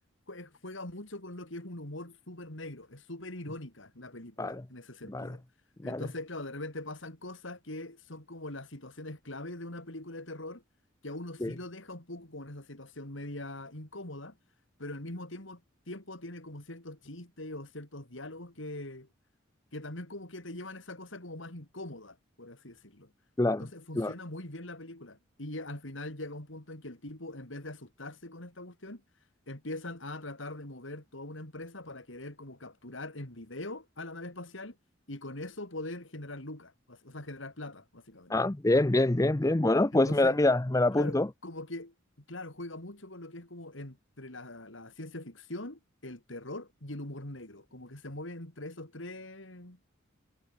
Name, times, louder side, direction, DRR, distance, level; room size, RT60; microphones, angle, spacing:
voice 1, 0.3-5.4 5.8-10.6 11.0-14.4 14.8-15.6 15.9-19.1 19.7-23.1 23.6-29.0 29.5-34.8 35.1-38.3 39.9-40.4 40.9-41.2 41.4-41.9 42.3-49.8, left 1 dB, 70° left, 3.9 m, -42 dB
voice 2, 38.3-41.3, left 2 dB, 15° left, 0.6 m, -25 dB
head